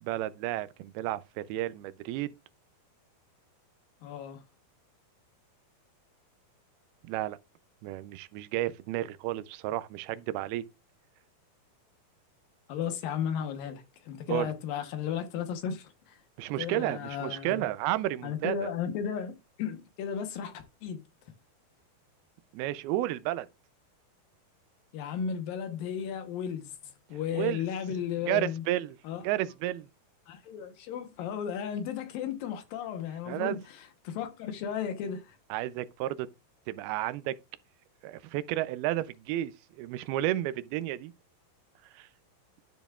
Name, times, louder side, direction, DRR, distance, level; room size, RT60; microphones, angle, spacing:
voice 1, 0.0-2.3 7.1-7.4 7.8-10.6 14.3-14.5 16.4-18.7 22.5-23.5 27.3-27.7 28.3-29.0 29.2-29.9 33.3-33.6 35.5-36.3 36.7-37.4 38.0-39.5 39.8-41.1 41.9-42.1, right 14 dB, 85° right, 2.5 m, -32 dB
voice 2, 4.0-4.4 12.7-16.2 16.6-17.7 18.2-20.5 20.8-21.0 24.9-26.7 27.1-28.6 29.0-29.2 30.3-33.6 34.0-35.4, left 8 dB, 70° left, 2.6 m, -34 dB
12.5 x 7.0 x 2.3 m
omnidirectional pair, 4.4 m